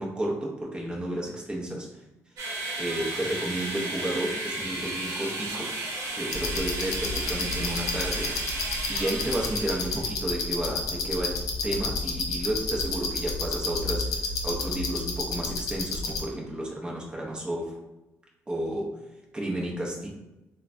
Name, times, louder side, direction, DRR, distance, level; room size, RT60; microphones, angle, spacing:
voice 1, 0.0-2.0 2.8-5.7 6.1-8.6 8.9-11.4 11.6-17.8 18.5-20.1, right 1 dB, 15° right, -2 dB, 0.6 m, -32 dB
sound 1, 2.4-10.1, right 2 dB, 70° right, 0.8 m, -34 dB
sound 2, 6.3-16.2, left 3 dB, 80° left, 0.5 m, -30 dB
3.1 x 2.1 x 2.5 m, 0.98 s
cardioid pair, 85°, 6 cm